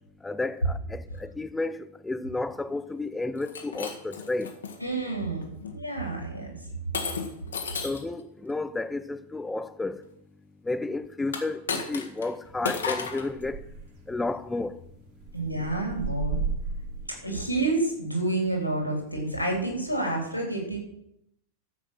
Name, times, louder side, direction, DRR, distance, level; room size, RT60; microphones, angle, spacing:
voice 1, 0.2-4.5 7.8-10.0 10.6-13.6 14.1-14.8, left 2 dB, 10° left, 0.8 m, -32 dB
Shatter, 3.4-4.8 5.4-5.8 6.9-8.1 11.3-12.3 12.6-13.3, left 5 dB, 65° left, 1.8 m, -33 dB
voice 2, 4.8-5.4 5.7-6.6 15.3-16.4 17.2-20.8, right 2 dB, 85° left, 3.7 m, -29 dB
sound 1, 12.4-17.5, right 4 dB, 45° right, 3.1 m, -36 dB
13.0 x 8.0 x 6.2 m
figure-of-eight pair, 90°, 0 cm